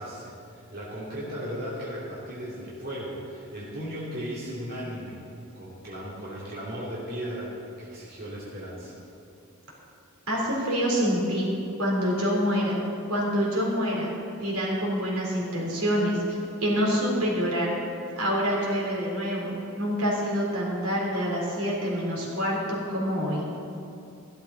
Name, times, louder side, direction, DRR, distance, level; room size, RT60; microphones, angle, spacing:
voice 1, 0.0-5.2 5.6-9.0, equal, 45° right, -7 dB, 2.6 m, -36 dB
voice 2, 10.3-11.5 11.8-12.8 13.1-14.1 14.4-17.7 18.2-23.5, equal, 80° right, -4 dB, 3.8 m, -26 dB
15.0 x 12.5 x 4.1 m, 2.7 s
head